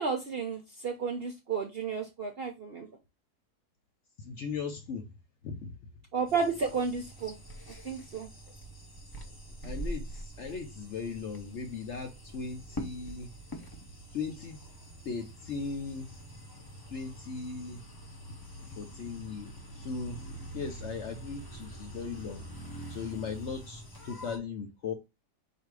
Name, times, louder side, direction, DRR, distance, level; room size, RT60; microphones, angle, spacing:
voice 1, 0.0-2.9 6.1-7.4 7.7-8.3, right 5 dB, 60° right, 0.6 m, -32 dB
voice 2, 4.2-5.1 5.4-5.8 8.5-8.6 9.3-9.4 9.6-13.3 14.1-14.6 15.1-16.2 16.9-17.8 18.8-20.2 20.5-22.4 22.9-24.9, left 5 dB, 60° left, 0.8 m, -38 dB
sound 1, 6.3-24.4, right 1 dB, 30° left, 0.4 m, -45 dB
4.1 x 2.6 x 4.6 m
omnidirectional pair, 1.7 m